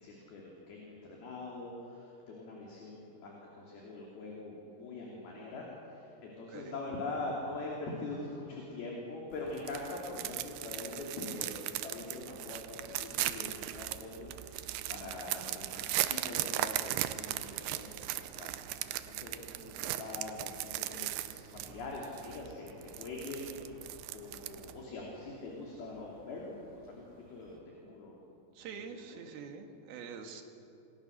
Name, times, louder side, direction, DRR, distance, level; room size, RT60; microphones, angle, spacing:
voice 1, 0.0-18.5 18.8-28.2 28.7-29.2, left 2 dB, 55° left, -3 dB, 4.7 m, -43 dB
sound 1, 9.3-24.8, right 14 dB, 80° right, 2.3 m, -38 dB
sound 2, 16.7-27.6, right 1 dB, 20° right, 2.8 m, -60 dB
voice 2, 28.5-30.4, right 6 dB, 60° right, 4 dB, 3.4 m, -45 dB
27.5 x 22.5 x 6.7 m, 2.9 s
omnidirectional pair, 5.5 m